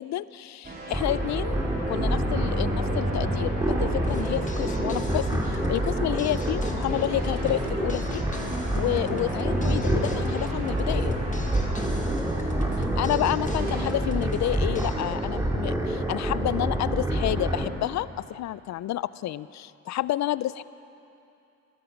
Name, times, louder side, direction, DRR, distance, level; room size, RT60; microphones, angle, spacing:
voice 1, 0.0-8.2 8.8-11.2 12.8-20.6, left 14 dB, 65° left, 18 dB, 0.5 m, -30 dB
sound 1, 0.6-13.8, right 1 dB, 30° right, 3.2 m, -34 dB
sound 2, 0.9-17.7, right 1 dB, 10° right, 2.3 m, -28 dB
sound 3, 4.1-15.0, left 3 dB, 25° left, 1.6 m, -38 dB
21.0 x 13.0 x 5.2 m, 2.7 s
cardioid pair, 90°, 30 cm